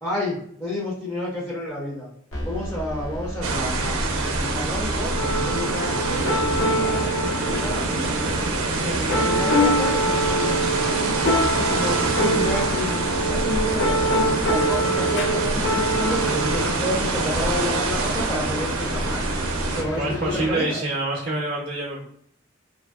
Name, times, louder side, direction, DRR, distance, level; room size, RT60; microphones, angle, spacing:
voice 1, 0.0-2.1 2.4-8.1 8.8-11.1 11.5-19.2 19.7-20.8, left 1 dB, 10° left, -5 dB, 0.5 m, -30 dB
sound 1, 2.3-20.5, equal, 75° left, 1.0 m, -34 dB
sound 2, 3.4-19.8, right 3 dB, 90° right, 0.5 m, -26 dB
sound 3, 5.2-16.7, right 1 dB, 55° left, 0.5 m, -25 dB
voice 2, 19.9-22.0, right 2 dB, 45° right, -4 dB, 0.6 m, -26 dB
2.7 x 2.6 x 2.2 m, 0.66 s
head